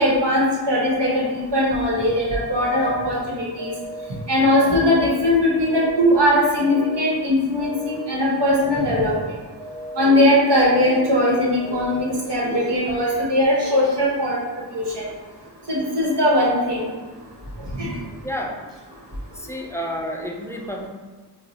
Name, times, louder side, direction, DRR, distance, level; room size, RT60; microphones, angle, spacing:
voice 1, 0.0-3.7 4.3-9.1 10.0-14.4 14.7-15.0 15.7-16.8 17.8-17.9, left 1 dB, 75° right, -5 dB, 1.0 m, -19 dB
sound 1, 2.6-3.1 3.6-4.1 4.6-5.1 5.6-6.1 6.6-7.1 7.6-8.1 8.6-9.1 9.6-10.1 10.6-11.1 11.6-12.1, equal, 10° right, 1.4 m, -35 dB
voice 2, 18.2-18.6 19.4-20.9, equal, 5° left, 0 dB, 0.3 m, -30 dB
2.6 x 2.0 x 3.9 m, 1.4 s
wide cardioid pair, 55°, 42 cm